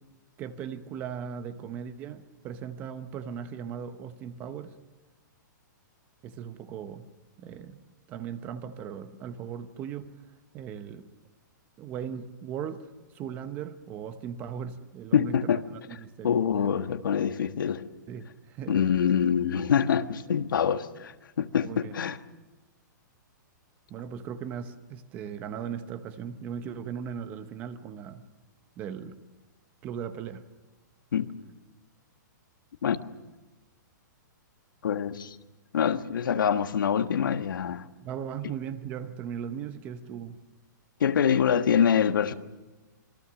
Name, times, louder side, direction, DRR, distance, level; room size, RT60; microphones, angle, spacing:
voice 1, 0.4-4.8 6.2-7.1 7.4-7.8 8.1-10.1 10.5-11.1 11.8-12.9 13.1-16.3 16.6-16.8 18.1-18.8 21.6-22.0 23.9-28.2 28.8-29.2 29.8-30.4 38.0-40.4, right 8 dB, 15° right, 0.8 m, -38 dB
voice 2, 15.1-15.6 16.2-17.9 18.7-22.2 31.1-31.3 32.8-33.0 34.8-35.4 35.7-37.8 41.0-42.3, left 8 dB, 90° left, 1.4 m, -25 dB
26.5 x 22.5 x 6.3 m
hypercardioid pair, 175°, 11 cm